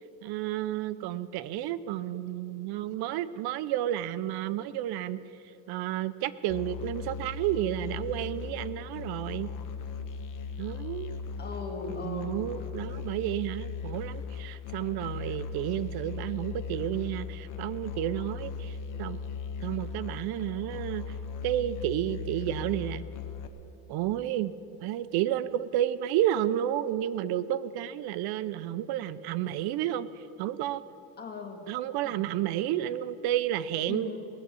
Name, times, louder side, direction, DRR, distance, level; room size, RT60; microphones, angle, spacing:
voice 1, 0.2-5.2 5.7-9.5 10.6-11.2 12.0-18.7 19.0-19.2 19.6-21.1 21.4-23.0 23.9-24.5 24.8-30.1 30.4-30.8 31.7-34.2, right 12 dB, 80° right, 15 dB, 0.6 m, -31 dB
Musical instrument, 6.5-23.5, left 5 dB, 55° left, 1.0 m, -38 dB
voice 2, 11.4-12.4 31.2-31.6 32.0-32.3 33.9-34.2, left 4 dB, 25° left, 2 dB, 1.8 m, -38 dB
18.5 x 7.4 x 8.3 m, 2.9 s
cardioid pair, 150°, 37 cm